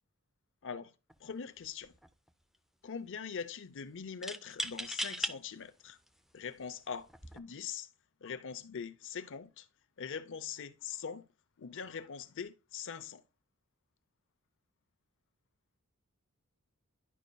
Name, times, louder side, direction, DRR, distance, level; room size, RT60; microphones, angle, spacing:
sound 1, 1.1-1.3 1.6-2.3 4.2-5.4 6.1-6.2 7.1-7.4, equal, ahead, 0.3 m, -38 dB
voice 1, 1.2-1.9 2.8-6.0 6.3-7.1 7.3-7.9 8.2-9.7 10.0-11.2 11.6-13.2, left 7 dB, 60° left, 0.6 m, -42 dB
11.0 x 5.1 x 2.2 m
head